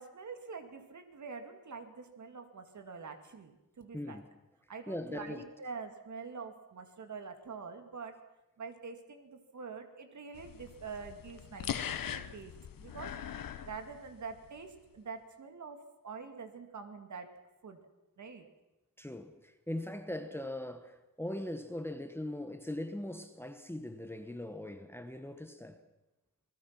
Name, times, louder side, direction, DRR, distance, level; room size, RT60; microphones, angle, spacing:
voice 1, 0.0-4.2 4.7-8.2 8.6-12.5 12.8-13.2 13.6-17.3 17.6-17.8 18.2-18.5, right 5 dB, 60° right, 2.4 m, -45 dB
voice 2, 3.9-4.2 4.9-5.4 19.0-25.8, left 1 dB, 5° left, 1.1 m, -40 dB
sound 1, 10.4-14.5, left 9 dB, 85° left, 1.1 m, -41 dB
28.0 x 20.0 x 6.0 m
wide cardioid pair, 170°, 33 cm